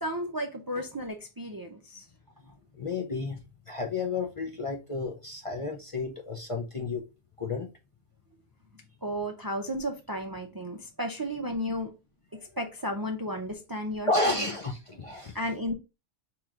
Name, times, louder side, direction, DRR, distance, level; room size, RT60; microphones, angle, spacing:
voice 1, 0.0-2.0 9.0-11.9 12.6-14.4 15.3-15.7, equal, 30° right, 0.4 m, -33 dB
voice 2, 2.7-3.4 3.7-7.0 7.4-7.7 12.3-12.4 14.0-15.4, left 3 dB, 40° left, 0.5 m, -31 dB
3.7 x 2.9 x 4.6 m
omnidirectional pair, 1.1 m